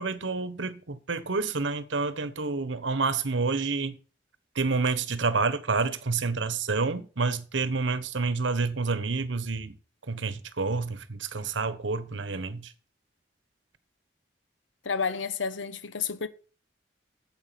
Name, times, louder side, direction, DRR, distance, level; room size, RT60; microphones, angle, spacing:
voice 1, 0.0-4.0 4.6-9.7 10.1-12.7, right 4 dB, 85° right, 1.0 m, -28 dB
voice 2, 14.8-16.3, left 5 dB, 90° left, 0.9 m, -30 dB
9.1 x 7.7 x 5.9 m
head